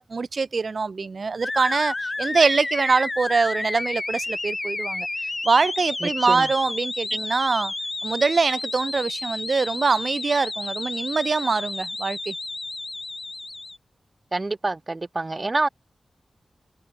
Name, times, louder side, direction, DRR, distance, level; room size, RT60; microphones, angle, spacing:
voice 1, 0.0-5.1 5.4-7.7 8.0-12.3, right 4 dB, 50° right, 1.6 m, -23 dB
sound 1, 1.4-13.8, left 2 dB, 30° left, 1.1 m, -31 dB
voice 2, 6.0-6.5 14.3-15.7, right 2 dB, 30° right, 0.4 m, -27 dB
wide cardioid pair, 115°, 0 cm